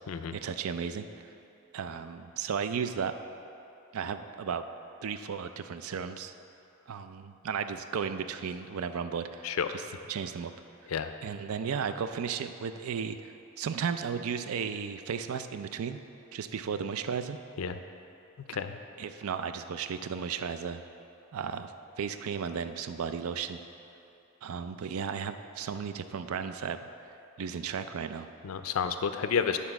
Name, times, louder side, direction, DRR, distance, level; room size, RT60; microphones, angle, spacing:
voice 1, 0.3-1.1 1.7-3.2 3.9-4.6 5.0-6.3 6.9-10.5 11.2-16.0 16.3-17.4 18.5-18.6 19.0-20.8 21.3-21.7 22.0-23.6 24.4-26.8 27.4-28.3, right 6 dB, 85° right, 10 dB, 0.4 m, -34 dB
voice 2, 28.4-29.6, left 6 dB, 75° left, 9 dB, 0.4 m, -30 dB
10.0 x 4.2 x 5.9 m, 2.8 s
head